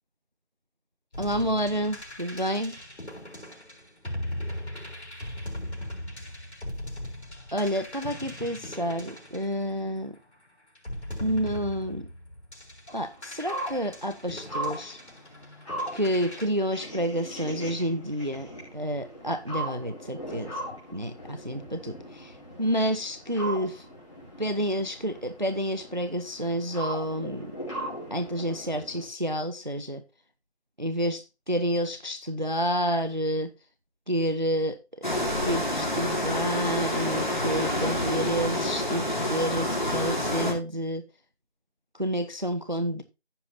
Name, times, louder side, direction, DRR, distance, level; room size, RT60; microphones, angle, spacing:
sound 1, 1.1-10.1 10.7-16.5, left 1 dB, 80° left, 3.5 m, -39 dB
voice 1, 1.2-2.7 7.5-10.2 11.2-12.1 12.9-15.0 15.9-18.5 18.7-20.5 20.9-22.3 22.6-23.9 24.4-27.5 28.1-30.0 30.8-33.5 34.1-34.8 35.4-41.0 42.0-43.0, equal, 45° right, 0.5 m, -29 dB
sound 2, 12.9-29.1, right 1 dB, 30° left, 4.4 m, -39 dB
sound 3, 35.0-40.5, left 1 dB, 45° left, 2.4 m, -28 dB
15.0 x 5.5 x 2.7 m
figure-of-eight pair, 175°, 33 cm